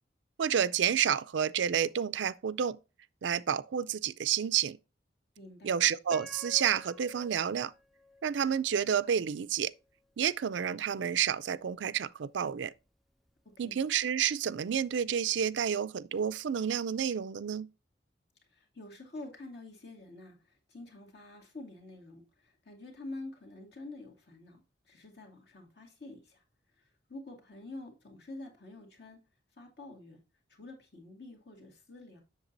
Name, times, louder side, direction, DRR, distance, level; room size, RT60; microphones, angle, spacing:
voice 1, 0.4-2.8 3.2-4.8 5.6-7.7 8.2-9.7 10.2-12.7 13.6-17.7, right 8 dB, 80° right, 0.4 m, -30 dB
voice 2, 5.4-5.8 13.4-13.8 18.5-29.2 29.5-30.2 30.5-32.2, left 2 dB, 60° left, 2.3 m, -48 dB
Piano, 6.1-9.1 9.7-9.8 10.4-10.7, left 1 dB, ahead, 0.4 m, -50 dB
8.0 x 6.6 x 2.6 m
head